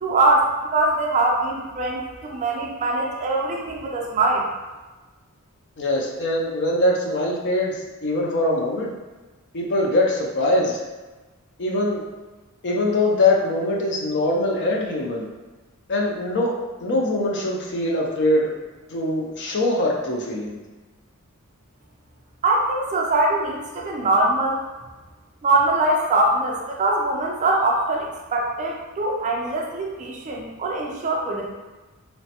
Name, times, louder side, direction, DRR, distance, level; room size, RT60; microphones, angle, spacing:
voice 1, 0.0-4.5 22.4-24.6 25.4-31.5, right 2 dB, 35° right, -1 dB, 0.4 m, -22 dB
voice 2, 5.8-7.7 8.0-8.9 9.5-10.8 11.6-12.0 12.6-15.3 15.9-16.5 16.8-18.5 18.9-20.6, left 1 dB, 50° left, -1 dB, 0.5 m, -22 dB
3.1 x 2.0 x 2.8 m, 1.2 s
head